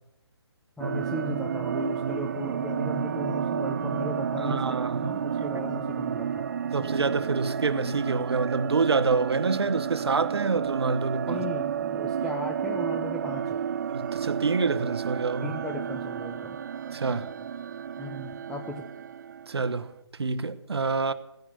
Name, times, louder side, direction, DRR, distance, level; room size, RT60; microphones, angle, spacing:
voice 1, 0.8-4.7 5.0-6.4 11.3-13.6 15.4-16.6 18.0-18.9, left 2 dB, 5° left, 0.8 m, -36 dB
sound 1, 0.8-19.7, right 8 dB, 40° right, 0.7 m, -31 dB
voice 2, 4.4-5.2 6.7-11.4 13.9-15.6 16.9-17.3 19.5-19.9 20.2-21.1, right 4 dB, 65° right, 1.2 m, -27 dB
17.0 x 10.5 x 8.1 m
figure-of-eight pair, 145°, 14 cm